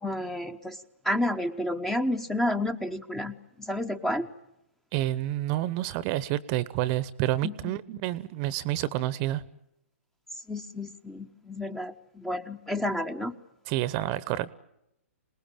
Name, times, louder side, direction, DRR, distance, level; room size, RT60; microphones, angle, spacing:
voice 1, 0.0-4.3 7.4-7.5 10.5-13.3, left 1 dB, 5° left, 10 dB, 1.0 m, -30 dB
voice 2, 4.9-9.4 13.7-14.5, right 14 dB, 35° right, 18 dB, 1.0 m, -29 dB
27.5 x 19.5 x 9.0 m, 0.84 s
hypercardioid pair, 125°, 7 cm